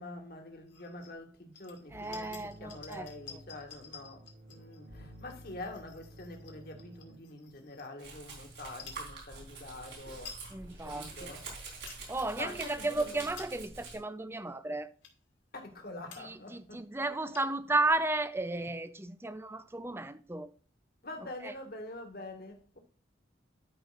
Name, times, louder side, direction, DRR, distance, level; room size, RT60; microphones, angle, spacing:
voice 1, 0.0-10.5 10.8-11.4 12.4-13.3 15.5-16.9 21.0-22.8, left 2 dB, 50° left, 1.7 m, -45 dB
sound 1, 0.7-1.1 1.5-8.2 8.7-9.1 9.7-9.8 10.0-10.5 10.9-11.0 11.5-12.1 12.5-12.7 13.2-13.8 14.4-14.5 15.0-15.3 15.8-15.9 16.1-16.5 16.8-16.9 17.1-17.7, left 6 dB, 70° left, 2.1 m, -52 dB
voice 2, 1.9-3.4 10.5-11.3 12.1-14.9 16.2-20.5 21.4-21.5, right 2 dB, 15° right, 0.5 m, -34 dB
sound 2, 1.9-7.2, equal, 90° right, 3.0 m, -53 dB
Domestic sounds home sounds, 8.0-14.0, right 3 dB, 60° right, 3.9 m, -46 dB
12.0 x 5.3 x 2.5 m
head